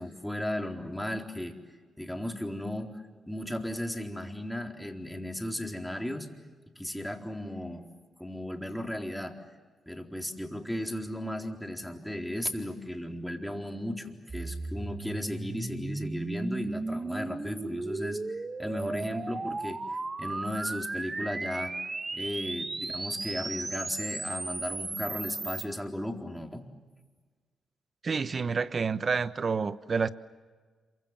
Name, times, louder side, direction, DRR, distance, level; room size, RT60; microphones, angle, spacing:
voice 1, 0.0-1.6 2.0-6.3 6.8-7.8 8.2-9.4 9.9-18.2 18.6-19.8 20.2-21.7 22.1-26.7, left 1 dB, 5° left, 4.1 m, -35 dB
sound 1, 14.3-25.7, right 3 dB, 30° right, 1.6 m, -35 dB
voice 2, 28.0-30.1, right 5 dB, 50° right, 1.2 m, -29 dB
27.5 x 24.5 x 7.6 m
supercardioid pair, 55°, 0 cm